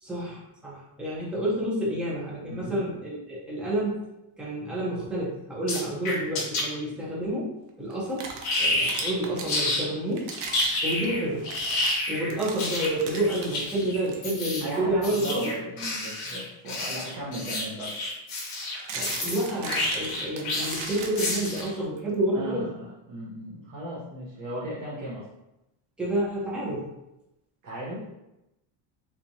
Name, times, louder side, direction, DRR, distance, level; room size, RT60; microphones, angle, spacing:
voice 1, 0.0-4.0 4.4-8.3 8.6-10.3 10.8-11.5 12.1-15.4 18.9-22.7 26.0-26.9, right 1 dB, ahead, -6 dB, 0.6 m, -29 dB
voice 2, 2.5-2.8 14.6-18.0 22.3-25.2 27.6-28.1, right 1 dB, 35° right, -7 dB, 0.8 m, -36 dB
sound 1, 5.7-6.6 8.4-9.1 9.5-9.9 10.3-21.8, left 2 dB, 45° left, 1.0 m, -29 dB
sound 2, 7.9-9.5 10.1-13.6 14.0-14.2 14.8-15.1 17.2-17.3 18.5-22.0, right 4 dB, 85° right, 0.8 m, -39 dB
3.5 x 3.0 x 2.6 m, 0.91 s
cardioid pair, 165°, 49 cm